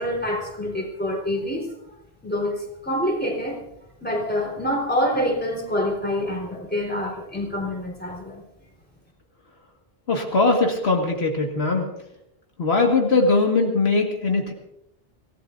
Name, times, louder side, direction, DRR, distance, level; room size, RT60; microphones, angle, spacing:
voice 1, 0.0-1.8 2.2-3.6 4.0-8.4, equal, 10° left, -2 dB, 3.8 m, -26 dB
voice 2, 10.1-11.9 12.6-14.5, left 3 dB, 75° left, 1 dB, 2.1 m, -20 dB
26.0 x 16.0 x 2.6 m, 0.83 s
omnidirectional pair, 1.1 m